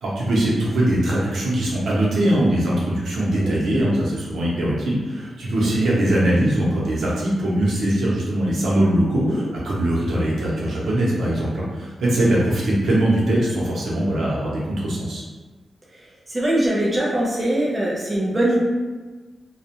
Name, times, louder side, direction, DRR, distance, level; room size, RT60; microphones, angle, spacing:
voice 1, 0.0-15.2, right 1 dB, 85° right, -6 dB, 0.7 m, -21 dB
voice 2, 3.4-3.9 9.1-9.4 15.9-18.6, right 1 dB, 20° right, -5 dB, 0.4 m, -23 dB
2.3 x 2.1 x 2.9 m, 1.3 s
wide cardioid pair, 180°, 0 cm